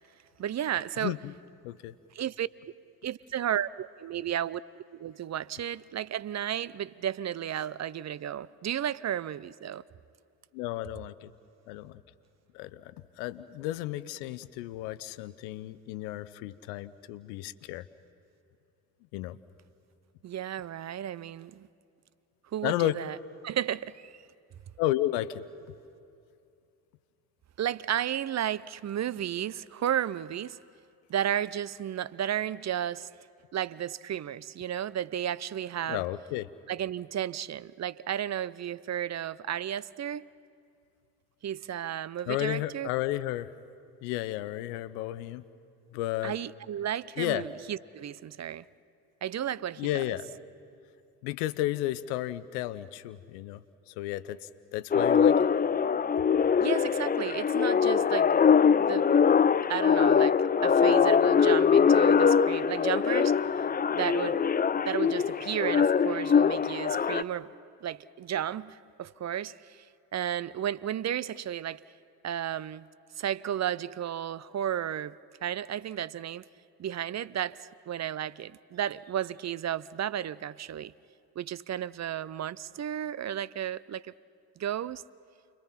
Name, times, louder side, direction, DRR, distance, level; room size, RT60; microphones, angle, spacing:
voice 1, 0.4-1.1 2.1-2.5 3.0-9.8 20.2-21.7 22.5-23.2 23.4-24.2 27.6-30.6 31.1-33.1 33.5-36.0 36.7-40.3 41.4-42.9 46.2-48.7 49.2-50.0 56.6-58.3 58.8-59.1 59.7-63.4 63.9-64.4 64.9-67.5 67.8-69.8 70.1-71.8 72.2-72.8 73.2-76.5 76.8-80.9 81.4-84.1 84.6-85.0, right 10 dB, 35° right, 0.5 m, -33 dB
voice 2, 1.0-1.3 1.6-1.9 10.5-11.3 11.7-12.0 12.5-17.9 19.1-19.4 22.6-22.9 24.8-25.4 35.9-36.5 42.3-43.5 44.0-45.4 45.9-46.4 47.2-47.4 49.8-50.3 51.2-55.5, left 15 dB, 80° left, 0.8 m, -33 dB
sound 1, 54.9-67.2, left 6 dB, 20° left, 0.5 m, -23 dB
29.5 x 22.0 x 5.8 m
hypercardioid pair, 50°, 47 cm